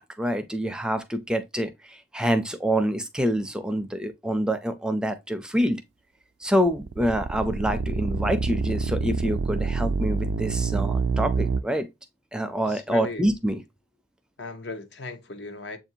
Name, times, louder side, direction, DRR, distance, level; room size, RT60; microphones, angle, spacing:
voice 1, 0.0-5.8 6.4-11.9 12.3-13.6, equal, 5° right, 0.4 m, -26 dB
sound 1, 6.7-11.6, right 4 dB, 85° right, 0.3 m, -26 dB
voice 2, 12.6-13.3 14.4-15.8, left 3 dB, 75° left, 0.8 m, -37 dB
7.2 x 2.5 x 2.7 m
head